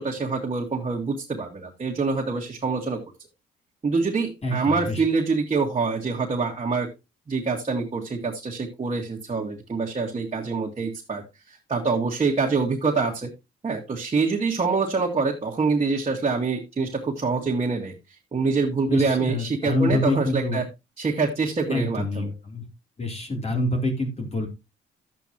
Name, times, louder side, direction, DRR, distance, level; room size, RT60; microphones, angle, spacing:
voice 1, 0.0-3.0 3.8-6.9 7.3-11.2 11.5-13.3 13.6-17.9 18.3-20.7 21.0-22.3, right 4 dB, 30° right, -1 dB, 2.0 m, -25 dB
voice 2, 4.4-5.0 18.9-20.6 21.7-22.6 23.0-24.5, left 2 dB, 30° left, 2 dB, 3.4 m, -26 dB
11.5 x 8.2 x 3.0 m, 0.25 s
cardioid pair, 90°, 20 cm